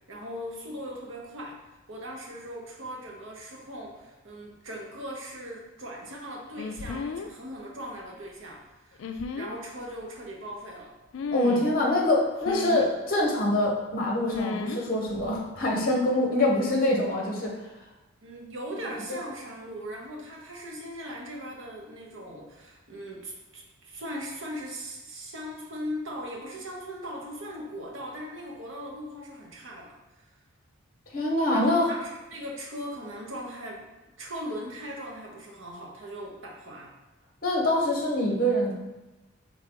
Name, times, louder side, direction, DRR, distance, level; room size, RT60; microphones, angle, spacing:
voice 1, 0.1-9.0 9.3-10.9 18.2-30.4 31.5-33.8 34.2-36.9, equal, 65° right, -1 dB, 1.0 m, -39 dB
sound 1, 6.6-7.3 9.0-9.5 11.1-11.7 12.4-12.9 14.3-14.8 15.1-15.3, left 4 dB, 65° left, 0.3 m, -34 dB
voice 2, 11.3-17.6 31.1-31.8 37.4-38.7, left 1 dB, 40° left, -1 dB, 0.9 m, -25 dB
3.7 x 3.5 x 3.6 m, 1.1 s
head